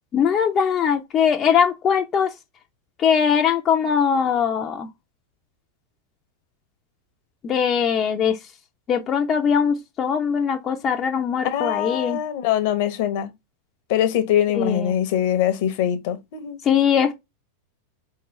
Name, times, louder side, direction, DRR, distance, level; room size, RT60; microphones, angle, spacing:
voice 1, 0.1-2.3 3.0-4.9 7.4-8.4 8.9-12.2 14.6-15.0 16.6-17.1, left 7 dB, 30° left, 0.7 m, -21 dB
voice 2, 11.4-13.3 13.9-16.6, left 10 dB, 50° left, 1.0 m, -23 dB
4.5 x 3.7 x 3.1 m
figure-of-eight pair, 90°, 0 cm